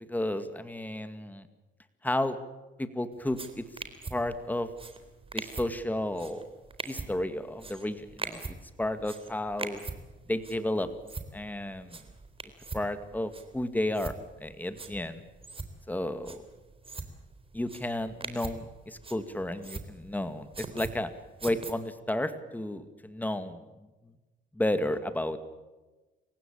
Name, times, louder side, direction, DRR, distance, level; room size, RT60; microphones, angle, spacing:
voice 1, 0.1-1.5 2.0-2.4 2.8-3.7 4.1-4.7 5.3-6.5 6.9-9.8 10.3-10.9 11.3-12.0 12.7-15.2 15.9-16.4 17.5-21.1 21.4-23.6 24.5-25.4, left 1 dB, 10° left, 10 dB, 2.1 m, -32 dB
sound 1, 3.2-21.7, right 3 dB, 30° right, 3.6 m, -43 dB
27.5 x 16.0 x 8.6 m, 1.2 s
cardioid pair, 90°, 20 cm